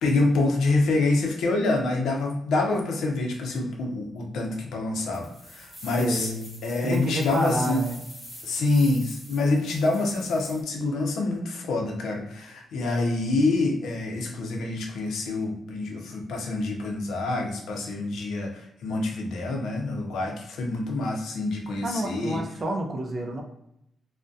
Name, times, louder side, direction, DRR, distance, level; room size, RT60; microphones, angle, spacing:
voice 1, 0.0-6.3 6.6-7.8 8.4-22.4, left 2 dB, 85° left, 1 dB, 0.5 m, -26 dB
sound 1, 5.0-10.6, equal, 5° left, 0.9 m, -45 dB
voice 2, 6.0-6.5 6.8-8.0 21.8-23.4, right 1 dB, 35° right, 2 dB, 0.4 m, -29 dB
2.3 x 2.1 x 2.5 m, 0.77 s
cardioid pair, 125°, 0 cm